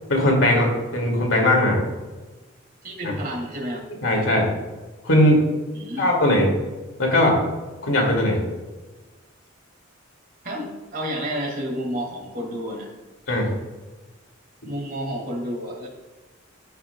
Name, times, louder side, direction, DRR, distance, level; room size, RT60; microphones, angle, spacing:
voice 1, 0.1-1.8 3.0-3.1 4.0-4.5 5.0-5.4 6.0-6.5 7.0-7.4 7.8-8.4 13.3-13.5, left 1 dB, 70° left, 0 dB, 2.2 m, -19 dB
voice 2, 2.8-3.8 5.7-6.1 10.4-12.9 14.7-15.9, equal, 45° right, 0 dB, 2.0 m, -30 dB
14.5 x 5.7 x 2.2 m, 1.2 s
head